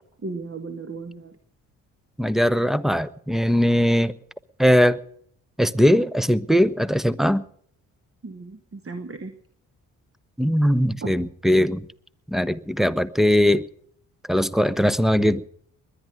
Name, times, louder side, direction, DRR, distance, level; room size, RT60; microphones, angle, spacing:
voice 1, 0.2-1.3 8.2-9.3 11.0-11.1, right 3 dB, 30° right, 1.7 m, -35 dB
voice 2, 2.2-4.1 4.6-5.0 5.6-7.4 10.4-11.8 12.3-13.7 14.3-15.4, equal, ahead, 0.9 m, -20 dB
21.5 x 10.0 x 6.3 m
hypercardioid pair, 40°, 45 cm